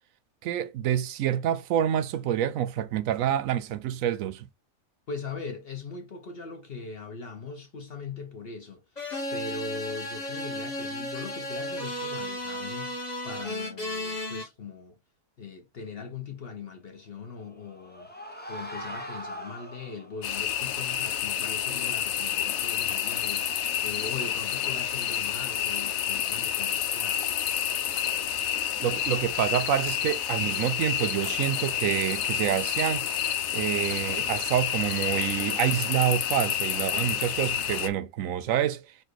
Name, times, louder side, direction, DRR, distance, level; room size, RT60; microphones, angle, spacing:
voice 1, 0.4-4.5 28.8-33.1 33.5-38.8, right 10 dB, 80° right, 1.0 m, -27 dB
voice 2, 5.1-15.0 15.4-18.1 18.5-27.3, left 4 dB, 50° left, 0.9 m, -40 dB
sound 1, 9.0-14.4, left 1 dB, 30° left, 1.5 m, -34 dB
sound 2, 17.3-20.3, equal, 10° left, 0.6 m, -41 dB
sound 3, 20.2-37.9, left 10 dB, 80° left, 1.1 m, -29 dB
4.4 x 2.5 x 4.5 m
omnidirectional pair, 1.4 m